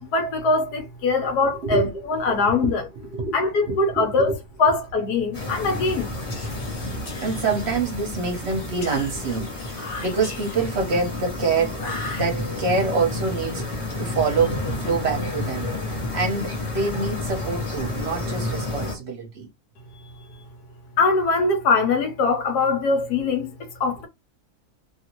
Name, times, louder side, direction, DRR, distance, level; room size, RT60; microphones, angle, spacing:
voice 1, 0.0-2.8 3.3-4.3 4.6-6.1 21.0-24.1, left 3 dB, 85° left, 1.4 m, -22 dB
voice 2, 1.6-2.7 3.0-3.4 3.7-4.4 7.1-19.5, right 4 dB, 50° right, 0.9 m, -26 dB
sound 1, 5.3-19.0, left 2 dB, 20° left, 1.1 m, -30 dB
Whispering, 6.1-8.1 8.8-10.8 11.7-12.8, left 3 dB, 65° left, 1.3 m, -39 dB
2.9 x 2.6 x 2.9 m
omnidirectional pair, 1.6 m